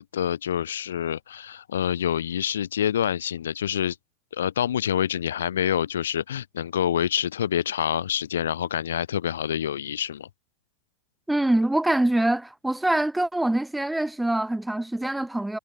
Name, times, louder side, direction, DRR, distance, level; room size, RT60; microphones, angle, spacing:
voice 1, 0.0-4.0 4.3-10.3, left 9 dB, 65° left, 0.8 m, -27 dB
voice 2, 11.3-15.6, right 1 dB, 5° right, 0.6 m, -24 dB
figure-of-eight pair, 90°, 0 cm